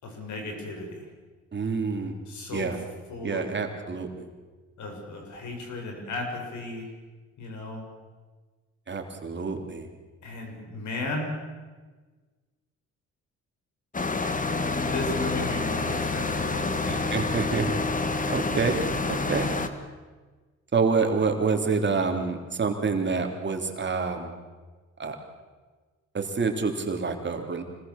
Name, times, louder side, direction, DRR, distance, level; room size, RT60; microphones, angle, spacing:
voice 1, 0.0-1.1 2.3-2.7 3.1-3.5 4.8-6.9 7.4-7.8 10.2-11.3 14.8-17.1, left 2 dB, 75° left, 2 dB, 6.9 m, -35 dB
voice 2, 1.5-2.2 2.5-2.8 3.2-4.3 8.9-9.9 16.9-17.7 18.3-18.8 19.1-19.5 20.7-24.3 25.0-25.2 26.1-27.6, right 4 dB, 35° right, 3 dB, 3.3 m, -27 dB
sound 1, 13.9-19.7, left 3 dB, 25° left, 1.9 m, -28 dB
25.5 x 19.5 x 7.3 m, 1.4 s
cardioid pair, 90°, 30 cm